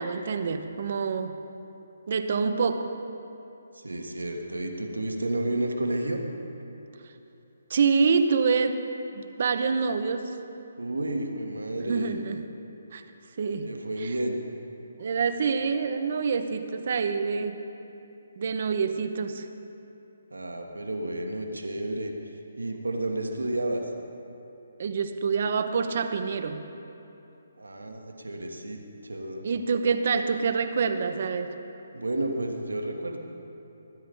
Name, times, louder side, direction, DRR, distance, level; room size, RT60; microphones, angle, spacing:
voice 1, 0.0-1.4 2.1-2.9 7.7-8.8 9.1-10.3 11.8-12.4 12.9-13.0 13.4-13.7 14.0-14.1 15.0-17.6 18.4-19.5 24.8-26.6 29.4-31.6, right 5 dB, 55° right, 8 dB, 0.8 m, -26 dB
voice 2, 3.7-6.2 10.8-12.2 13.6-14.4 20.3-22.1 22.6-23.9 27.6-29.5 31.9-33.2, right 1 dB, 85° right, 3 dB, 1.5 m, -31 dB
18.5 x 9.7 x 3.8 m, 2.9 s
figure-of-eight pair, 145°, 0 cm